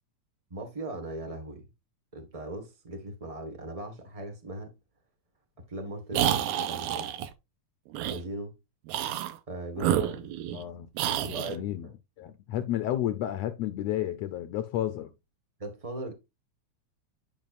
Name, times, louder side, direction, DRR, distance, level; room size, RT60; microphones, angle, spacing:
voice 1, 0.5-1.7 2.1-4.7 5.7-7.1 8.1-8.5 9.5-10.4 11.3-11.6 15.6-16.1, right 1 dB, 60° right, 0.3 m, -39 dB
sound 1, 6.1-7.3 7.9-8.2 8.9-9.4 9.8-10.6 11.0-11.5, right 11 dB, 90° right, 2.2 m, -29 dB
voice 2, 9.8-10.2 10.5-11.9 12.2-15.1, left 12 dB, 75° left, 1.6 m, -32 dB
11.0 x 5.4 x 2.5 m
omnidirectional pair, 3.4 m